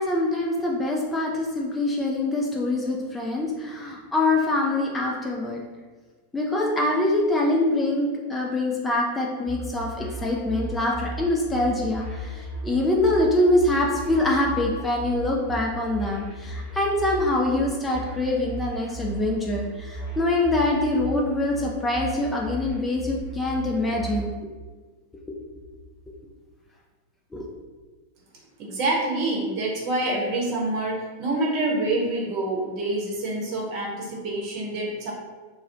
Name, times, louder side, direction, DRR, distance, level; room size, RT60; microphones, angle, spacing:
voice 1, 0.0-5.6 6.3-24.3 27.3-27.5, left 2 dB, 10° left, -2 dB, 0.4 m, -24 dB
sound 1, 9.5-24.3, right 1 dB, 5° right, 1.2 m, -36 dB
voice 2, 28.6-35.1, right 2 dB, 40° right, -2 dB, 0.8 m, -26 dB
2.4 x 2.0 x 3.7 m, 1.4 s
figure-of-eight pair, 90°, 0 cm